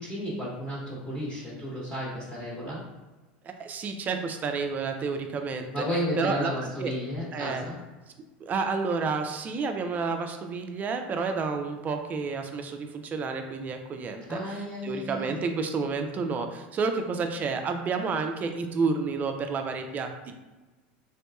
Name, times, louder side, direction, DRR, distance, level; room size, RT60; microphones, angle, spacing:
voice 1, 0.0-2.8 5.7-7.8 14.3-15.4, equal, 20° left, -6 dB, 1.0 m, -33 dB
voice 2, 3.4-5.7 6.2-6.9 7.3-7.7 8.4-20.3, right 4 dB, 30° right, 6 dB, 0.4 m, -30 dB
3.4 x 2.8 x 2.3 m, 1.2 s
supercardioid pair, 110°, 5 cm